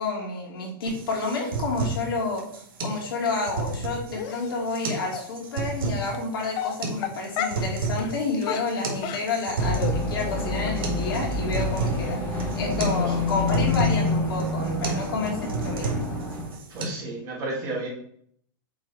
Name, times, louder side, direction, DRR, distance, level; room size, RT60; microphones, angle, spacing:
voice 1, 0.0-2.4 2.8-12.2 12.6-16.1, left 3 dB, 80° left, -1 dB, 2.8 m, -29 dB
sound 1, 0.9-16.9, right 3 dB, 75° right, 2.1 m, -32 dB
Dog, 4.2-4.5 5.1-5.2 6.0-6.2 6.5-7.7 8.0-8.1 8.4-9.9 10.2-10.4 10.6-10.8 11.1-11.2 11.6-11.7 12.1-12.2 12.4-12.5, left 9 dB, 35° left, 0.6 m, -32 dB
sound 2, 9.6-16.5, left 2 dB, 15° left, 1.5 m, -28 dB
voice 2, 16.7-17.9, right 2 dB, 25° right, -4 dB, 2.0 m, -32 dB
6.7 x 4.1 x 4.3 m, 0.65 s
supercardioid pair, 160°, 12 cm